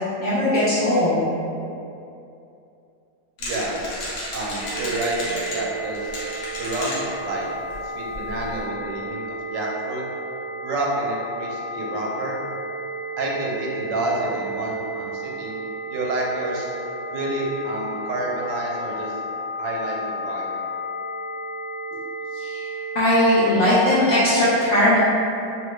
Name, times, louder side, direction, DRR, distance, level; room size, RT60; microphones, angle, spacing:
voice 1, 0.2-1.2 22.3-22.7 22.9-25.0, left 1 dB, 80° left, -11 dB, 0.6 m, -19 dB
sound 1, 3.4-5.6 5.9-7.0 7.4-7.5 7.7-7.8 8.1-8.6, left 1 dB, 65° left, 1.1 m, -32 dB
voice 2, 3.4-3.8 4.3-6.1 6.6-7.5 7.8-9.2 9.5-10.0 10.6-12.4 13.2-15.6 15.9-16.7 17.1-19.2 19.6-20.5, right 2 dB, 80° right, -3 dB, 1.2 m, -28 dB
sound 2, 4.6-23.7, right 1 dB, 10° left, 0.6 m, -33 dB
3.3 x 2.0 x 3.0 m, 2.7 s
omnidirectional pair, 1.9 m